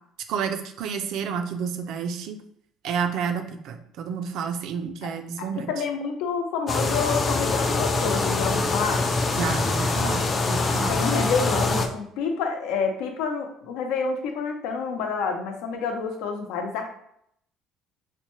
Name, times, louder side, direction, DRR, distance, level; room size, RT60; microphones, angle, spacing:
voice 1, 0.3-2.4 2.8-5.7 9.3-11.0, right 7 dB, 55° right, 7 dB, 0.4 m, -30 dB
voice 2, 5.6-9.0 10.9-16.9, left 5 dB, 80° left, 4 dB, 0.6 m, -28 dB
sound 1, 6.7-11.9, left 3 dB, 25° left, 0.3 m, -24 dB
4.2 x 2.1 x 3.0 m, 0.71 s
cardioid pair, 175°, 0 cm